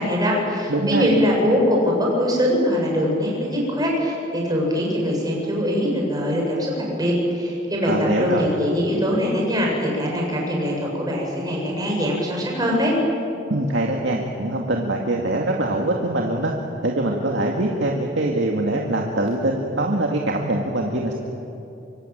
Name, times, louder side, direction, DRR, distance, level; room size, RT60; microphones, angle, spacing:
voice 1, 0.0-7.9 8.2-13.0, equal, 20° right, -2 dB, 7.7 m, -22 dB
voice 2, 0.7-1.1 7.8-8.5 13.5-16.5 16.8-21.2, right 1 dB, 70° right, 0 dB, 2.3 m, -23 dB
25.0 x 24.5 x 8.9 m, 2.8 s
head